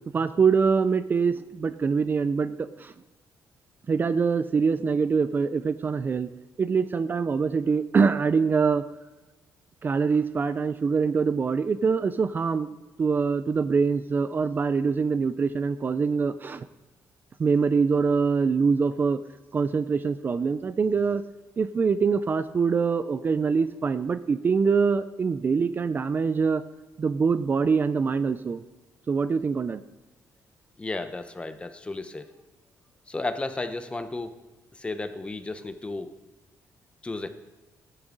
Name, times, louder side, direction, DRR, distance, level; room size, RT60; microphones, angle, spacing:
voice 1, 0.1-2.9 3.9-6.3 6.6-8.8 9.8-12.7 13.0-16.7 17.4-19.2 19.5-21.2 21.6-26.6 27.0-28.6 29.1-29.8, right 5 dB, 35° right, 13 dB, 0.4 m, -24 dB
voice 2, 30.8-32.3 33.1-34.4 34.7-36.1 37.0-37.3, left 2 dB, 20° left, 10 dB, 0.9 m, -33 dB
16.5 x 11.0 x 3.9 m, 1.1 s
cardioid pair, 120°, 6 cm